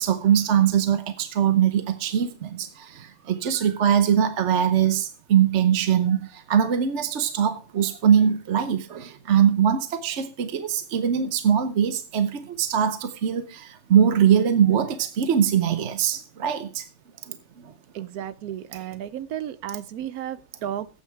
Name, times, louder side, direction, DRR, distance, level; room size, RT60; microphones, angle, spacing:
voice 1, 0.0-16.9 17.3-17.4 17.6-17.7 18.0-18.1 18.7-18.9, right 8 dB, 55° right, 1.1 m, -22 dB
voice 2, 17.9-20.9, right 10 dB, 90° right, 1.2 m, -33 dB
13.5 x 8.6 x 4.6 m
omnidirectional pair, 1.5 m